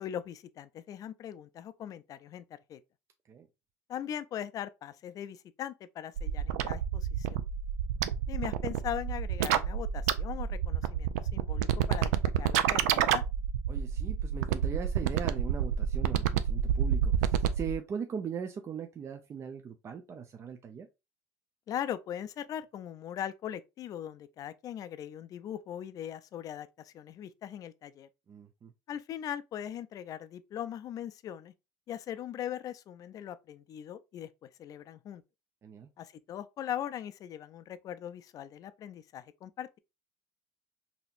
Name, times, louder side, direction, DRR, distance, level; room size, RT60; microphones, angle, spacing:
voice 1, 0.0-2.4 2.7-2.8 3.9-7.4 8.3-12.1 12.4-13.2 21.7-28.1 28.9-31.5 31.9-35.2 36.0-39.8, left 10 dB, 45° left, 0.4 m, -40 dB
sound 1, 6.2-17.7, right 10 dB, 90° right, 0.4 m, -28 dB
voice 2, 13.7-20.9 28.3-28.7 35.6-35.9, right 7 dB, 35° right, 0.5 m, -40 dB
4.1 x 2.9 x 2.4 m
supercardioid pair, 105°, 9 cm